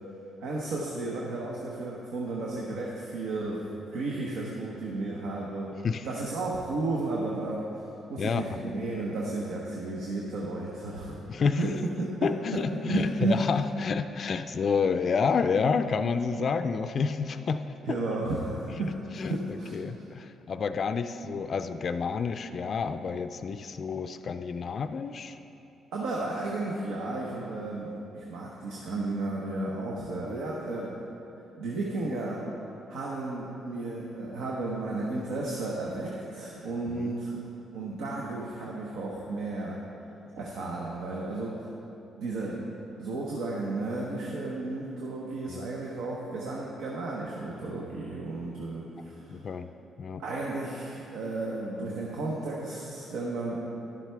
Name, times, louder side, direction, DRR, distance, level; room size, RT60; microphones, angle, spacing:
voice 1, 0.4-3.6 3.9-5.7 6.0-7.6 8.1-11.3 11.6-13.4 17.9-18.9 19.2-20.1 25.9-31.0 31.6-32.5 32.9-37.4 37.7-39.8 40.4-41.7 42.2-49.3 50.2-53.6, right 2 dB, 85° right, -3 dB, 0.9 m, -33 dB
voice 2, 11.3-11.6 12.2-17.6 17.9-18.0 18.7-18.8 19.2-25.4 30.2-30.4 36.9-37.1 45.5-45.7 49.3-49.7 50.0-50.2, left 5 dB, 50° left, 9 dB, 0.3 m, -29 dB
11.0 x 7.4 x 3.4 m, 2.9 s
cardioid pair, 90°, 0 cm